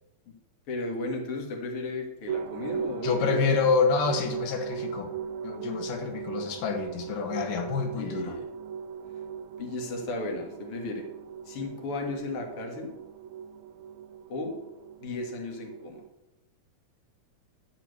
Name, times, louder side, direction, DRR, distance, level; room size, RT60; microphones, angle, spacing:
voice 1, 0.7-3.5 7.9-8.5 9.6-11.0 11.5-12.9 14.3-14.6 15.0-16.0, left 3 dB, 50° left, 2 dB, 2.6 m, -35 dB
sound 1, 2.3-16.1, right 7 dB, 75° right, 1.9 m, -38 dB
voice 2, 3.0-5.1 5.4-8.4, left 5 dB, 85° left, 4 dB, 2.9 m, -27 dB
12.5 x 4.4 x 8.2 m, 0.96 s
omnidirectional pair, 3.6 m